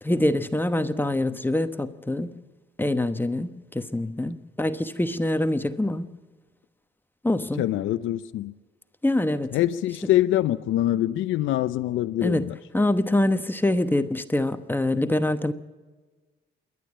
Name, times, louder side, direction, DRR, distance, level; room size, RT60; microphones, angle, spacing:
voice 1, 0.0-2.4 2.8-6.2 7.2-7.7 9.0-9.6 12.2-15.5, left 1 dB, 10° left, 1.0 m, -25 dB
voice 2, 7.6-8.5 9.5-12.5, left 13 dB, 80° left, 0.6 m, -24 dB
27.5 x 11.0 x 8.7 m
cardioid pair, 90°, 20 cm